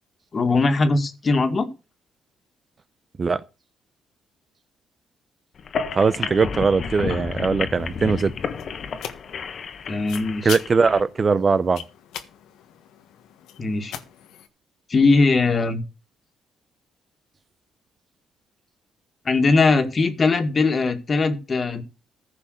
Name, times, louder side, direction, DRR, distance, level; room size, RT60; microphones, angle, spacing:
voice 1, 0.3-1.7 9.9-10.5 13.6-13.9 14.9-15.8 19.3-21.8, left 3 dB, 40° left, 2.0 m, -20 dB
sound 1, 5.6-11.0, left 6 dB, 55° left, 1.3 m, -31 dB
voice 2, 5.9-8.3 10.4-11.8, right 4 dB, 35° right, 0.7 m, -20 dB
sound 2, 7.7-14.5, left 10 dB, 85° left, 1.4 m, -41 dB
15.0 x 5.6 x 6.5 m
cardioid pair, 90°, 0 cm